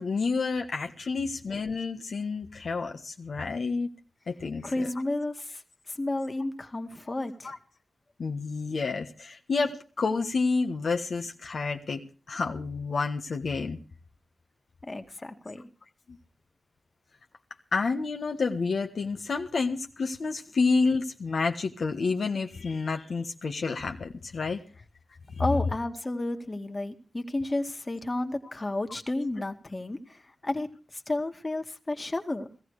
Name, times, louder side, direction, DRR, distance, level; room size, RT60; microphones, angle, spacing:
voice 1, 0.0-3.9 4.3-4.9 7.4-7.6 8.2-12.0 12.3-13.8 16.1-16.2 17.7-24.6 25.3-25.4, left 4 dB, 75° left, 3 dB, 1.4 m, -29 dB
voice 2, 4.6-5.6 5.9-7.5 14.8-15.7 25.4-30.7 30.9-32.5, left 2 dB, 35° left, 6 dB, 2.1 m, -32 dB
17.5 x 15.0 x 4.9 m, 0.36 s
cardioid pair, 55°, 0 cm